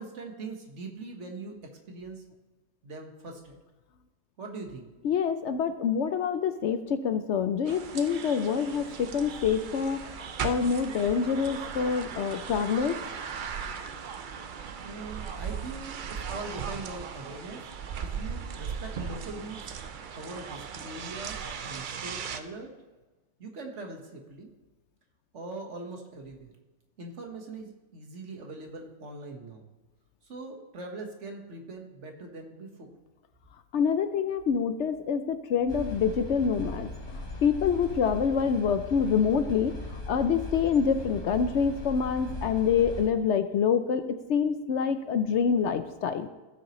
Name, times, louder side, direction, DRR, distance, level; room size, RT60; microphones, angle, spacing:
voice 1, 0.0-2.2 2.8-3.6 4.4-4.9 14.8-17.7 18.0-19.7 20.1-22.8 23.4-24.5 25.3-26.5 27.0-29.6 30.2-32.9, right 3 dB, 50° right, 3 dB, 1.6 m, -42 dB
voice 2, 5.0-13.0 33.7-46.3, left 6 dB, 65° left, 10 dB, 0.7 m, -26 dB
sound 1, 7.6-22.4, right 6 dB, 75° right, 0.4 m, -38 dB
sound 2, 35.7-43.1, left 1 dB, 30° left, 2.5 m, -39 dB
17.5 x 6.3 x 3.0 m, 1.2 s
omnidirectional pair, 1.6 m